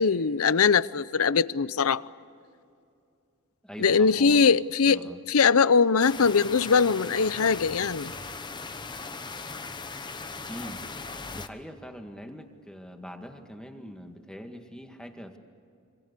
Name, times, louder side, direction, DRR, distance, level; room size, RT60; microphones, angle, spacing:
voice 1, 0.0-2.0 3.8-5.0 5.3-8.1, left 5 dB, 85° left, 0.7 m, -21 dB
voice 2, 3.6-4.6 4.8-5.2 10.5-10.8 11.3-15.4, equal, 5° left, 1.9 m, -42 dB
sound 1, 6.0-11.5, left 4 dB, 20° left, 1.0 m, -38 dB
26.5 x 26.0 x 6.8 m
head